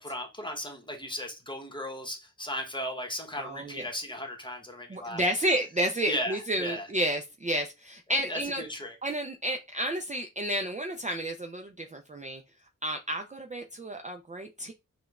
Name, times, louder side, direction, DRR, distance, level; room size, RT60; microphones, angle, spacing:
voice 1, 0.0-5.2 6.1-6.9 8.3-9.0, left 1 dB, 15° left, 1.0 m, -36 dB
voice 2, 3.4-3.8 4.9-8.6 9.0-12.4 12.8-14.7, right 1 dB, 25° right, 0.4 m, -31 dB
4.9 x 2.2 x 2.4 m
cardioid pair, 60°, 32 cm